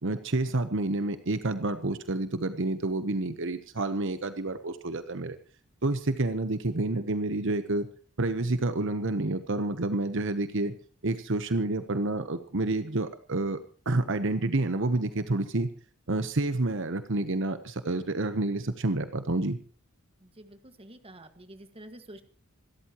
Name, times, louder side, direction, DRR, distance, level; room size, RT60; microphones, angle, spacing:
voice 1, 0.0-5.4 5.8-7.9 8.2-10.7 11.0-13.6 13.9-15.7 16.1-19.6, right 2 dB, 60° right, 10 dB, 1.0 m, -29 dB
voice 2, 20.2-22.2, right 1 dB, 25° right, 8 dB, 1.8 m, -49 dB
27.0 x 13.5 x 3.0 m, 0.39 s
head